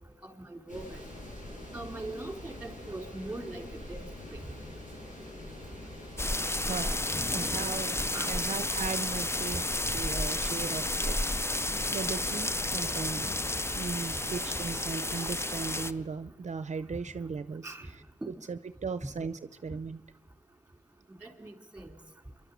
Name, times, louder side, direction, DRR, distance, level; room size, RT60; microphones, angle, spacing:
voice 1, 0.2-1.0 1.7-4.1 8.1-8.3 17.6-17.9 21.2-21.9, right 2 dB, 10° right, 5 dB, 3.7 m, -41 dB
sound 1, 0.7-15.9, left 1 dB, 75° left, 7.8 m, -45 dB
sound 2, 6.2-15.9, left 1 dB, 20° left, 0.6 m, -31 dB
voice 2, 6.6-7.0 7.3-9.7 9.9-13.3 13.7-20.0 21.4-21.5, right 5 dB, 65° right, 13 dB, 0.6 m, -38 dB
27.0 x 12.0 x 8.3 m, 1.3 s
cardioid pair, 50°, 13 cm